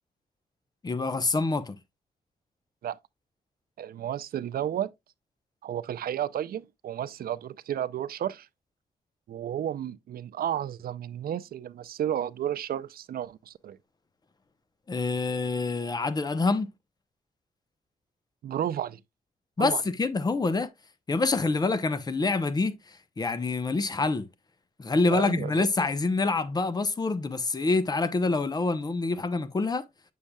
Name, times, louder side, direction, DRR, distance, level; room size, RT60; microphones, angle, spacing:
voice 1, 0.8-1.8 14.9-16.7 19.6-20.7 21.1-22.8 23.2-24.3 24.8-29.8, left 3 dB, 25° left, 0.7 m, -26 dB
voice 2, 3.8-4.9 5.6-8.5 9.3-13.8 18.4-19.0 19.6-19.8 25.1-25.7, right 10 dB, 80° right, 0.5 m, -32 dB
8.5 x 6.4 x 2.2 m
wide cardioid pair, 135°, 15 cm